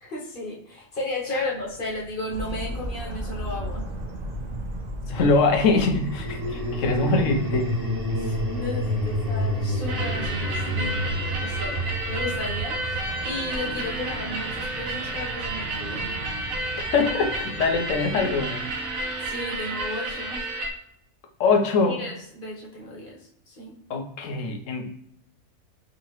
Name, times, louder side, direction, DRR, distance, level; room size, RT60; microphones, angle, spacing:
voice 1, 0.0-3.8 8.2-11.1 11.4-11.8 12.1-13.0 13.2-16.1 19.2-20.5 21.9-23.2 23.5-23.7, left 2 dB, 45° left, -3 dB, 1.1 m, -34 dB
sound 1, 1.7-4.2 5.8-18.1, equal, 30° right, 0.9 m, -31 dB
sound 2, 2.3-18.4, right 1 dB, 55° right, 0.4 m, -37 dB
voice 2, 5.1-7.7 16.9-18.9 21.4-22.0 23.9-24.9, left 3 dB, 70° left, 4 dB, 1.0 m, -23 dB
sound 3, 9.9-20.7, right 2 dB, 85° right, 1.1 m, -31 dB
3.8 x 2.8 x 3.0 m, 0.72 s
omnidirectional pair, 1.4 m